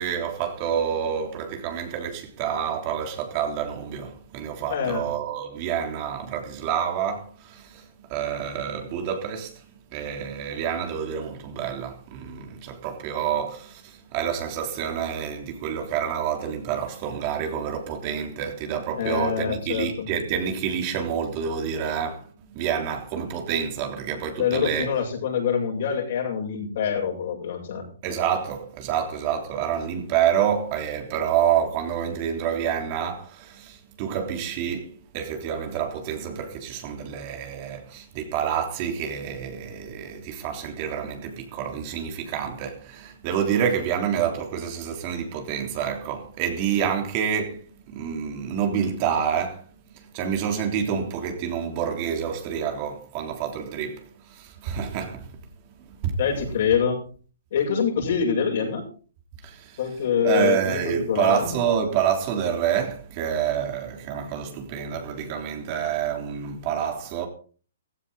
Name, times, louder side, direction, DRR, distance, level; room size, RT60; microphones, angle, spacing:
voice 1, 0.0-9.7 9.9-24.9 28.0-49.7 49.9-55.4 55.9-56.2 59.4-59.8 60.2-67.3, right 8 dB, 35° right, 3.4 m, -28 dB
voice 2, 4.7-5.0 19.0-20.1 24.4-27.8 56.2-57.0 57.5-58.8 59.8-61.5, left 7 dB, 60° left, 7.8 m, -25 dB
16.0 x 15.0 x 4.1 m
hypercardioid pair, 145°, 0 cm